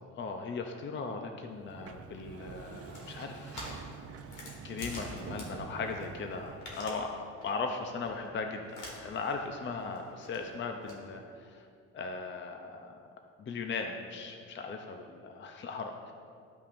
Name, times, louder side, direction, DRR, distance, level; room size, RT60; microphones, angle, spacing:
voice 1, 0.1-3.8 4.6-11.7 11.9-13.1 13.4-16.1, left 4 dB, 40° left, 4 dB, 0.6 m, -38 dB
Sliding door, 1.5-6.8, right 5 dB, 50° right, 0.6 m, -46 dB
sound 1, 2.8-6.1 6.3-7.1 7.4-7.7 8.0-8.3 8.7-9.3 9.6-10.9, left 1 dB, 80° left, 1.7 m, -47 dB
12.0 x 5.4 x 2.6 m, 2.3 s
cardioid pair, 90°, 30 cm